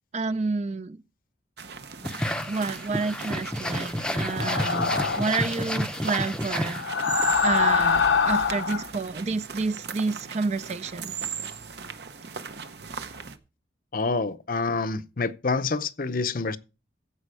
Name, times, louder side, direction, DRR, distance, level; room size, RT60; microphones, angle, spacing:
voice 1, 0.1-1.0 2.5-7.1 7.4-11.2, right 4 dB, 35° right, 0.4 m, -29 dB
sound 1, 1.6-13.4, right 6 dB, 60° right, 0.9 m, -38 dB
sound 2, 2.0-7.3, left 1 dB, 5° left, 0.6 m, -30 dB
sound 3, 4.3-5.4 6.7-8.9, left 5 dB, 85° left, 0.9 m, -24 dB
voice 2, 13.9-16.6, left 3 dB, 45° left, 0.6 m, -27 dB
15.5 x 5.2 x 4.8 m
head